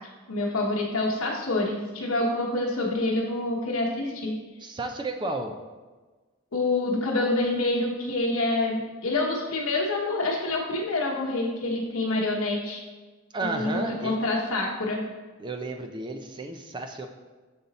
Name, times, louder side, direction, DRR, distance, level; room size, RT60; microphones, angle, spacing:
voice 1, 0.3-4.4 6.5-12.8 13.4-15.0, left 2 dB, 70° left, -3 dB, 0.9 m, -27 dB
voice 2, 4.6-5.5 13.3-14.2 15.4-17.1, right 2 dB, 20° right, 4 dB, 0.4 m, -32 dB
6.9 x 4.0 x 4.0 m, 1.3 s
head